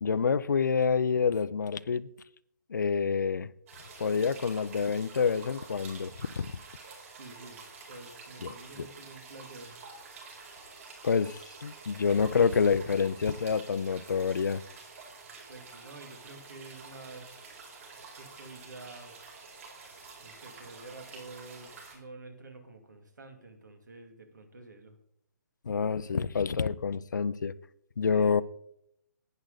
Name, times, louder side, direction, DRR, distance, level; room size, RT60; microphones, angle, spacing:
voice 1, 0.0-2.1 2.7-3.5 4.0-6.5 8.4-8.9 11.0-14.6 25.7-27.5 28.0-28.4, left 6 dB, 90° left, 0.5 m, -27 dB
sound 1, 3.7-22.0, right 4 dB, 50° right, 4.9 m, -49 dB
voice 2, 7.1-7.6 7.9-9.8 15.2-17.4 18.1-19.2 20.2-25.0 28.0-28.3, right 2 dB, 85° right, 2.4 m, -49 dB
10.5 x 9.7 x 4.0 m
hypercardioid pair, 155°, 10 cm